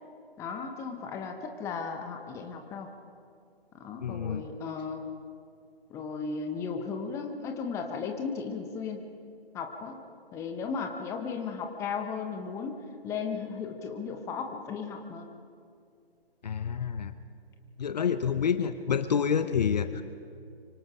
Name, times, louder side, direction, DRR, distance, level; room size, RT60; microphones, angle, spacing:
voice 1, 0.4-2.9 3.8-5.0 5.9-9.0 9.5-10.0 10.3-12.8 13.0-15.3 19.3-19.6, left 5 dB, 10° left, 5 dB, 1.0 m, -35 dB
voice 2, 4.0-4.4 16.4-17.1 17.8-20.0, left 7 dB, 45° left, 11 dB, 0.8 m, -28 dB
25.0 x 24.5 x 5.0 m, 2.4 s
figure-of-eight pair, 140°, 31 cm